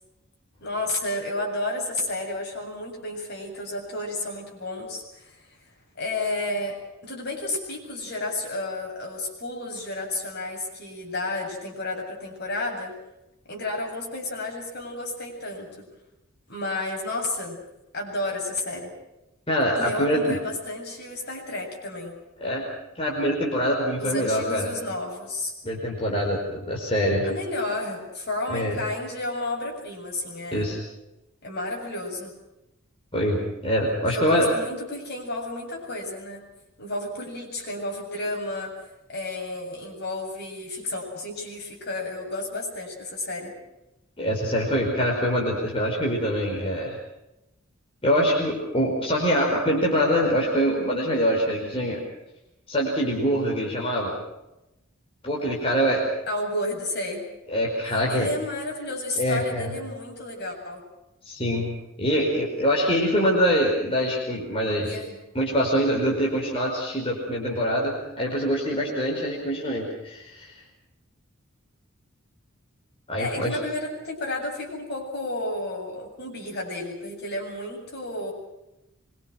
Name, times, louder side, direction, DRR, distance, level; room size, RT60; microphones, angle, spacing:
voice 1, 0.6-5.5 6.0-12.9 13.5-15.8 16.5-17.6 17.9-18.9 19.7-22.2 24.0-25.5 27.2-30.7 31.4-32.3 34.0-36.4 36.8-38.7 39.1-43.5 56.3-57.2 58.1-60.8 64.8-65.2 73.2-78.3, left 2 dB, 50° left, 0 dB, 7.8 m, -32 dB
voice 2, 19.5-20.4 22.4-22.6 22.9-24.7 25.6-27.3 28.5-28.8 30.5-30.8 33.1-34.5 44.2-47.0 48.0-52.0 52.7-54.2 55.2-56.0 57.5-58.3 59.2-59.7 61.2-65.0 65.3-70.5 73.1-73.6, equal, 25° left, -3 dB, 5.0 m, -24 dB
25.0 x 24.0 x 6.3 m, 0.91 s
head